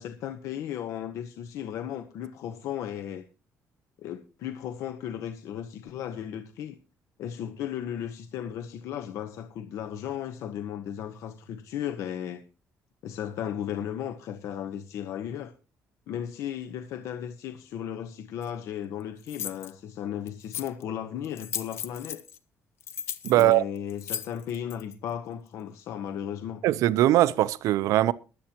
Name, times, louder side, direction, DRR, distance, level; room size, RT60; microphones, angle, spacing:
voice 1, 0.0-3.2 4.0-6.8 7.2-12.4 13.0-15.5 16.1-22.2 23.3-26.6, left 9 dB, 70° left, 1.1 m, -35 dB
sound 1, 18.4-18.5 19.3-19.7 20.3-20.8 21.2-22.4 22.8-24.9, left 8 dB, 50° left, 1.3 m, -36 dB
voice 2, 23.2-23.6 26.6-28.1, right 14 dB, 85° right, 0.7 m, -21 dB
22.0 x 8.7 x 3.0 m
cardioid pair, 175°, 5 cm